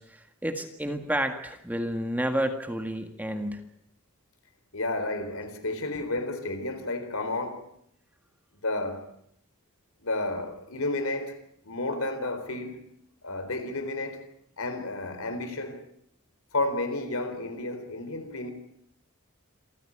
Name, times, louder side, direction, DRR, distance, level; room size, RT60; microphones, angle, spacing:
voice 1, 0.0-3.6, right 1 dB, 5° right, 1.8 m, -30 dB
voice 2, 4.7-7.7 8.5-9.1 10.0-11.4 11.6-12.8 13.2-14.2 14.6-15.8 16.5-18.5, left 2 dB, 65° left, 4.1 m, -31 dB
27.5 x 15.0 x 8.7 m
head